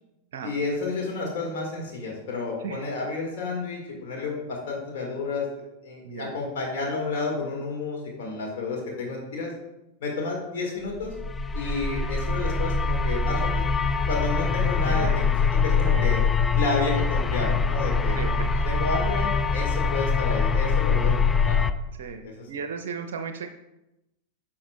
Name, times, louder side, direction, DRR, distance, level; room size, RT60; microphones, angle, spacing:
voice 1, 0.4-5.5 5.8-9.5 10.0-11.1 11.5-13.5 14.1-16.2 16.6-18.2 18.6-21.6 22.2-22.5, left 3 dB, 55° left, 0 dB, 1.6 m, -31 dB
sound 1, 11.0-21.7, left 5 dB, 15° left, 0.3 m, -24 dB
voice 2, 14.8-15.2 15.9-16.1 18.1-18.7 19.5-19.7 22.0-23.5, right 6 dB, 55° right, 7 dB, 0.5 m, -36 dB
9.8 x 5.8 x 2.2 m, 0.92 s
figure-of-eight pair, 90°, 0 cm